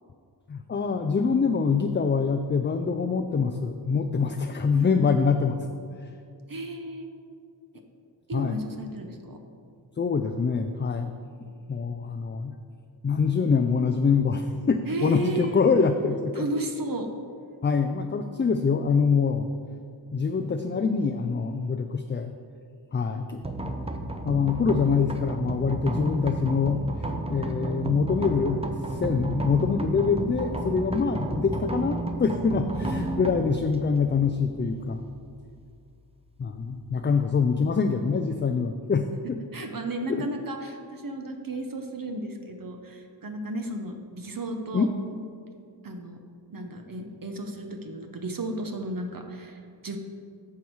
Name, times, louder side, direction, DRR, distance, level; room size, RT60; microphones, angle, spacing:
voice 1, 0.5-5.6 6.0-6.1 8.3-8.6 10.0-11.1 11.7-12.5 13.0-16.5 17.6-19.5 20.1-22.3 22.9-23.4 24.2-26.8 27.3-35.0 36.4-39.4 40.1-40.2 44.7-44.9, left 5 dB, 25° left, 7 dB, 0.4 m, -25 dB
voice 2, 6.5-7.1 8.3-9.4 14.9-15.6 16.3-17.1 32.8-33.3 39.5-44.9 45.8-46.2 46.5-50.0, right 1 dB, 50° right, 4 dB, 0.9 m, -34 dB
sound 1, 23.4-37.3, right 2 dB, 15° right, 0.6 m, -33 dB
9.3 x 6.3 x 4.6 m, 2.3 s
wide cardioid pair, 80°, 44 cm